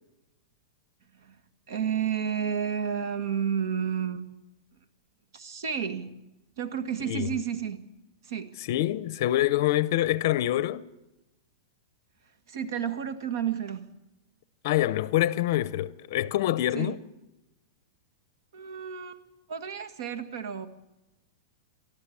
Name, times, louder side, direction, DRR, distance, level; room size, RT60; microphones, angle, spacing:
voice 1, 1.7-4.2 5.3-6.1 6.6-7.8 8.2-8.6 12.5-13.9 16.7-17.0 18.5-19.2 19.5-20.7, right 8 dB, 65° right, 1.7 m, -31 dB
voice 2, 8.7-10.9 14.6-17.0, left 14 dB, 45° left, 0.6 m, -25 dB
23.0 x 13.5 x 8.4 m
supercardioid pair, 175°, 2 cm